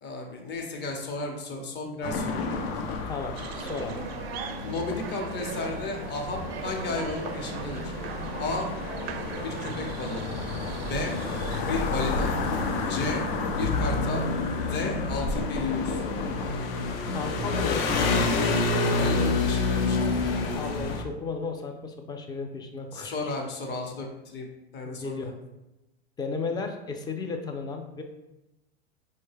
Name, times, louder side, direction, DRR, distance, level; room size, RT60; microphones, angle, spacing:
voice 1, 0.0-2.4 4.6-7.9 8.4-8.7 9.4-10.3 10.9-11.2 11.6-12.3 12.8-13.2 13.6-14.3 14.7-16.0 18.9-20.2 22.9-24.5 24.7-25.3, left 2 dB, 35° left, 1 dB, 0.9 m, -33 dB
sound 1, 2.0-21.0, left 3 dB, 65° left, 0.6 m, -29 dB
voice 2, 3.1-4.0 17.1-18.2 20.4-23.3 24.8-25.4 26.2-28.0, left 4 dB, 15° left, 4 dB, 0.4 m, -34 dB
sound 2, 3.3-11.6, right 7 dB, 70° right, 0.4 m, -39 dB
4.7 x 2.1 x 3.2 m, 0.96 s
hypercardioid pair, 105°, 31 cm